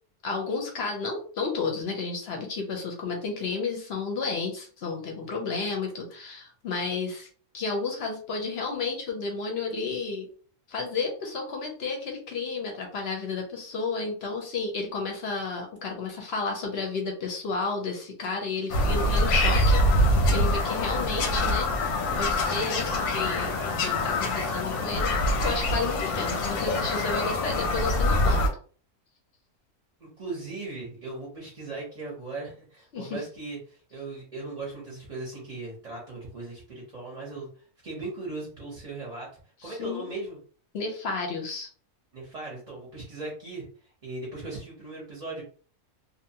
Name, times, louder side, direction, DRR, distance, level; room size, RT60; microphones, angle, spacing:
voice 1, 0.2-7.3 7.5-10.3 10.7-28.5 32.9-33.2 39.6-40.1 40.7-41.7, left 4 dB, 60° left, 1 dB, 0.7 m, -32 dB
Bird vocalization bird call bird song, 18.7-28.5, left 1 dB, 90° left, 1.1 m, -25 dB
voice 2, 30.0-39.3 39.6-40.4 42.1-45.4, right 3 dB, 35° right, -4 dB, 0.6 m, -38 dB
2.7 x 2.1 x 2.7 m, 0.42 s
omnidirectional pair, 1.6 m